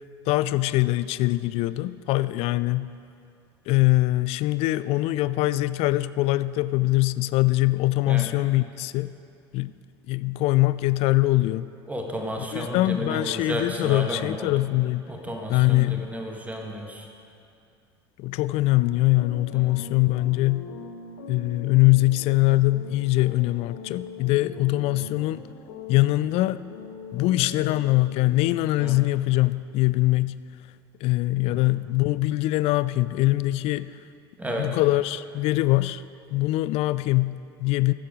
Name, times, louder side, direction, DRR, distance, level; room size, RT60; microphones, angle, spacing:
voice 1, 0.3-2.9 3.7-9.1 9.5-9.7 10.1-11.7 12.4-15.0 15.5-16.1 18.2-20.7 21.3-25.4 25.9-26.6 27.1-30.4 31.0-34.0 34.6-36.0 36.3-37.9, left 18 dB, 45° left, 16 dB, 0.3 m, -23 dB
voice 2, 11.9-14.5 15.1-17.1 19.5-19.8 25.0-25.1 28.8-29.0 31.5-31.7 34.4-34.7, equal, 10° right, 1 dB, 1.5 m, -33 dB
sound 1, 18.7-28.6, left 4 dB, 65° left, 0.9 m, -42 dB
14.5 x 7.7 x 4.9 m, 2.5 s
figure-of-eight pair, 70°, 14 cm